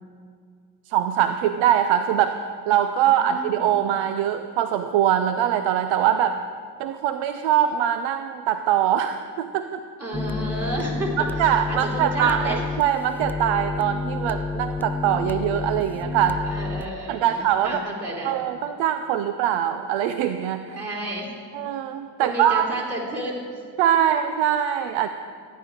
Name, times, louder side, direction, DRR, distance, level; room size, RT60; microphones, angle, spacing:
voice 1, 0.9-2.4 2.7-6.4 6.8-9.8 11.2-16.4 17.1-17.8 18.2-20.8 21.5-22.7 23.8-25.1, right 10 dB, 80° right, 9 dB, 0.6 m, -22 dB
voice 2, 3.2-3.7 10.0-11.1 11.4-12.6 16.5-18.3 20.7-21.3 22.2-23.4, right 1 dB, 30° right, -4 dB, 3.7 m, -31 dB
sound 1, 10.1-16.9, left 4 dB, 5° left, 0.3 m, -29 dB
16.0 x 9.4 x 4.8 m, 2.2 s
supercardioid pair, 65°, 45 cm